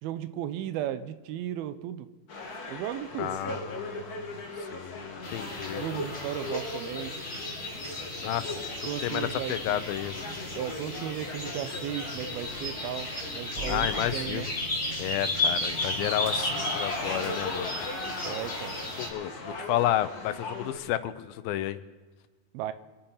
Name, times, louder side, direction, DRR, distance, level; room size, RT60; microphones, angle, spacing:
voice 1, 0.0-2.1 2.7-3.6 5.8-7.1 8.9-9.8 10.6-14.5 18.2-18.8 22.5-22.7, right 11 dB, 80° right, 13 dB, 2.6 m, -35 dB
sound 1, 2.3-20.8, left 2 dB, 45° left, 1.2 m, -39 dB
voice 2, 3.2-4.3 4.7-5.8 8.2-8.6 9.0-10.1 13.7-14.5 15.0-17.9 19.0-21.8, left 13 dB, 80° left, 13 dB, 2.3 m, -31 dB
sound 2, 5.2-19.1, left 1 dB, 20° left, 4.0 m, -34 dB
sound 3, 13.5-18.2, equal, 25° right, 3.1 m, -45 dB
26.0 x 9.1 x 5.6 m, 1.4 s
omnidirectional pair, 4.4 m